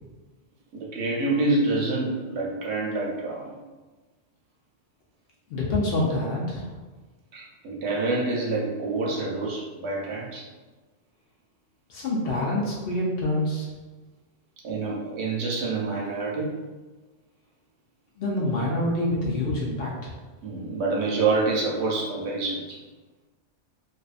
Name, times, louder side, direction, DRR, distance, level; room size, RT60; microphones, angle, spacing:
voice 1, 0.7-3.5 7.3-10.5 14.6-16.5 20.4-22.8, right 3 dB, 70° right, -2 dB, 0.8 m, -27 dB
voice 2, 5.5-6.7 11.9-13.7 18.2-20.1, left 1 dB, 65° left, -4 dB, 0.7 m, -26 dB
2.4 x 2.3 x 2.4 m, 1.3 s
omnidirectional pair, 1.2 m